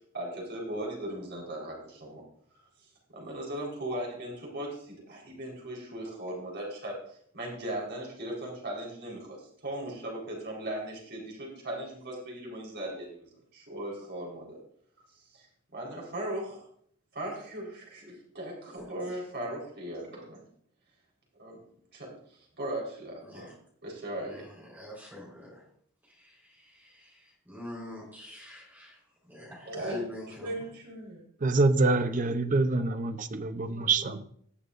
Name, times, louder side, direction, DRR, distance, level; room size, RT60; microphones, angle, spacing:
voice 1, 0.1-2.2 3.1-14.6 15.3-15.5 15.7-16.7 17.1-20.4 21.4-21.6 21.9-22.1 22.6-23.5 23.8-24.5 29.7-30.1 30.4-31.2, right 1 dB, 55° right, -2 dB, 4.2 m, -38 dB
voice 2, 18.8-19.1 23.2-23.6 24.2-25.6 26.0-30.5, left 1 dB, 10° right, -5 dB, 4.1 m, -46 dB
voice 3, 31.4-34.2, right 3 dB, 40° right, 10 dB, 0.6 m, -26 dB
18.5 x 7.0 x 2.6 m, 0.64 s
head